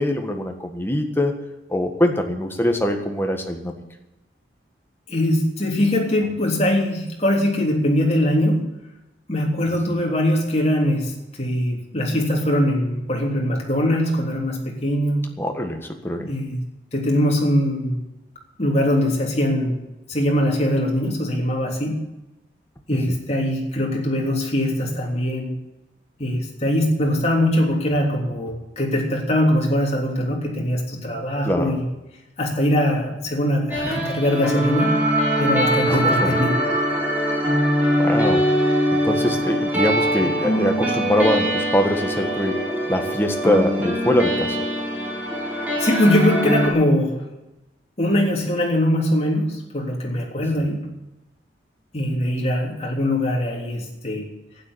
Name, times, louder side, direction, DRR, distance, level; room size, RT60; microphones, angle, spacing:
voice 1, 0.0-1.4 1.7-3.8 15.3-16.3 22.9-23.2 31.4-31.7 35.8-36.4 38.0-38.5 39.0-44.6 50.5-50.6, left 1 dB, 10° left, 4 dB, 1.5 m, -23 dB
voice 2, 5.1-8.7 9.3-15.3 16.3-16.6 16.9-18.0 18.6-19.8 20.1-22.0 22.9-25.5 26.2-31.8 32.4-35.0 35.4-36.5 45.8-47.2 48.0-50.9 51.9-54.3, left 1 dB, 35° left, -1 dB, 3.3 m, -22 dB
sound 1, 33.7-46.7, equal, 10° right, 3.5 m, -22 dB
12.0 x 9.7 x 10.0 m, 0.98 s
head